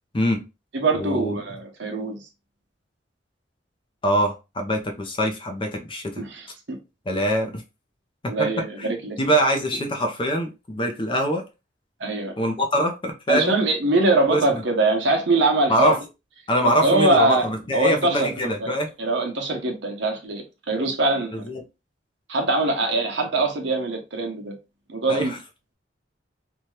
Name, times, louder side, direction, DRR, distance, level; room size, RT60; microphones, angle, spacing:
voice 1, 0.1-0.5 0.9-1.3 4.0-6.2 7.1-7.6 8.2-8.5 8.8-8.9 9.2-11.4 12.4-13.5 14.3-14.6 15.7-16.0 16.5-18.9 21.3-21.6 25.1-25.4, equal, 30° left, 0.6 m, -24 dB
voice 2, 0.7-2.2 6.2-6.5 8.3-9.2 12.0-12.3 13.3-15.9 16.6-17.5 17.7-21.5 22.3-24.5 24.9-25.3, right 2 dB, 75° right, 0.8 m, -23 dB
2.8 x 2.3 x 3.1 m
head